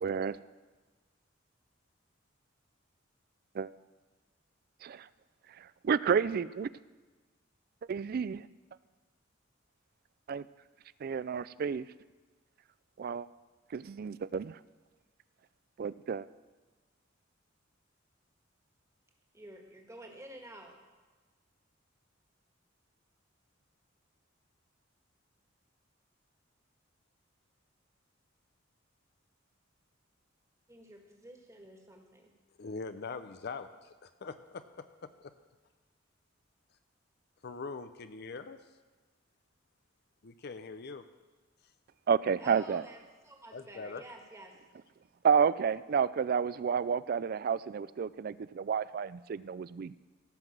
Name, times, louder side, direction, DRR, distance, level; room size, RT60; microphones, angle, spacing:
voice 1, 0.0-0.4 3.5-3.7 4.8-5.1 5.6-6.7 7.9-8.5 10.3-10.5 11.0-11.9 13.0-13.3 13.7-14.6 15.8-16.3 42.1-42.8 45.2-50.0, right 6 dB, 50° right, 18 dB, 0.3 m, -30 dB
voice 2, 19.3-20.7 30.7-32.3 42.4-44.6, right 1 dB, 15° right, 2 dB, 1.8 m, -51 dB
voice 3, 32.6-35.1 37.4-38.6 40.2-41.0 43.5-44.0, left 4 dB, 55° left, 10 dB, 0.5 m, -42 dB
16.5 x 5.9 x 7.5 m, 1.3 s
head